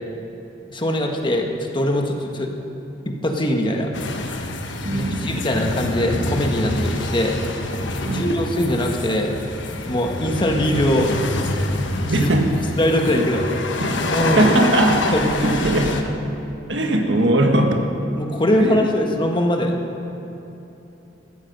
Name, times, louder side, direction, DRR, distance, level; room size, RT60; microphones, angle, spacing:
voice 1, 0.7-1.5 1.7-2.5 3.0-3.9 4.9-7.3 8.0-9.3 9.9-12.3 12.8-13.5 14.1-14.4 14.8-15.6 18.2-19.8, left 1 dB, 25° left, 2 dB, 1.4 m, -22 dB
sound 1, 3.9-16.0, left 2 dB, 80° left, 1.2 m, -26 dB
voice 2, 4.8-5.4 8.0-8.4 12.1-12.5 13.8-15.2 15.4-16.2 16.7-17.8 18.6-18.7, right 1 dB, 75° right, 3 dB, 1.6 m, -20 dB
16.0 x 14.0 x 5.4 m, 3.0 s
head